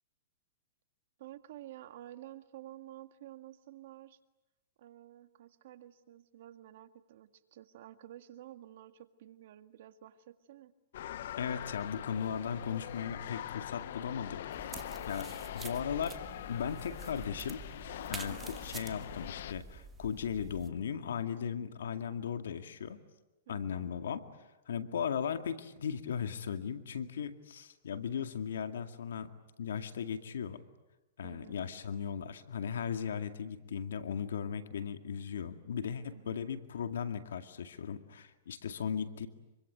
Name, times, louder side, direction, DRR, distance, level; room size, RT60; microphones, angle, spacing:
voice 1, 1.2-4.2 4.8-10.7 18.2-18.7 23.5-23.9 31.2-31.7 36.0-36.5, right 13 dB, 65° right, 9 dB, 1.9 m, -51 dB
sound 1, 10.9-19.5, left 11 dB, 65° left, 1.0 m, -43 dB
voice 2, 11.4-17.6 18.1-23.0 23.5-24.2 24.7-29.3 29.6-30.6 31.2-39.3, left 7 dB, 85° left, 8 dB, 2.2 m, -37 dB
sound 2, 14.5-20.7, right 4 dB, 15° right, 2.2 m, -48 dB
26.0 x 24.0 x 9.4 m, 1.0 s
hypercardioid pair, 135°, 0 cm